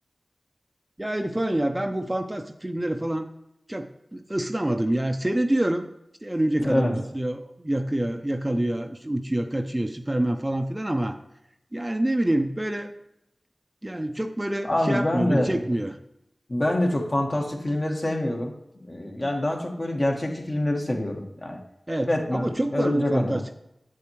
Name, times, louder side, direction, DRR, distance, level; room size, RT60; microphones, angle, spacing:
voice 1, 1.0-3.3 3.7-5.9 6.2-11.2 11.7-12.9 13.8-16.0 21.9-23.6, right 1 dB, 20° right, 7 dB, 0.6 m, -26 dB
voice 2, 6.6-7.0 14.6-15.6 16.5-18.5 18.8-21.6 22.1-23.4, left 1 dB, 40° left, 1 dB, 1.5 m, -25 dB
8.3 x 7.7 x 3.1 m, 0.85 s
wide cardioid pair, 60°, 0 cm